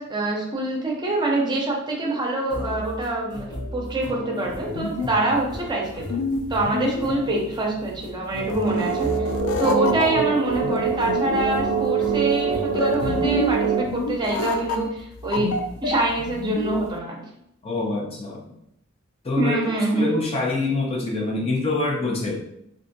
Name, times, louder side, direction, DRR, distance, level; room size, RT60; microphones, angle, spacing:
voice 1, 0.0-6.0 6.5-9.3 9.6-15.5 15.8-17.3 19.4-20.2, right 2 dB, 20° right, -2 dB, 0.6 m, -25 dB
sound 1, 2.5-13.7, left 1 dB, 60° left, 0.8 m, -36 dB
sound 2, 4.4-17.0, left 2 dB, 85° left, 0.3 m, -29 dB
sound 3, 8.7-13.8, right 6 dB, 70° right, 0.4 m, -25 dB
voice 2, 17.6-18.6 19.2-19.6 19.9-22.4, left 2 dB, 30° left, -1 dB, 0.5 m, -25 dB
3.5 x 2.5 x 2.6 m, 0.76 s
head